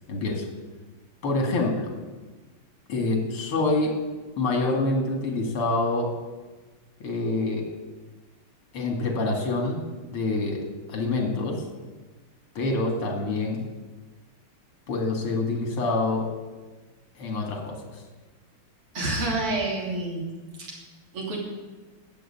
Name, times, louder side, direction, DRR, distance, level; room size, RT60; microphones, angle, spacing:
voice 1, 0.1-0.5 1.2-1.9 2.9-4.0 4.4-6.1 7.0-7.7 8.7-9.8 10.1-10.6 10.9-11.6 12.5-13.6 14.9-16.3 17.2-17.7, left 2 dB, 85° left, 2 dB, 3.3 m, -26 dB
voice 2, 18.9-20.2 20.6-20.8 21.1-21.4, right 2 dB, 90° right, -2 dB, 4.3 m, -28 dB
13.0 x 8.2 x 8.8 m, 1.2 s
omnidirectional pair, 2.4 m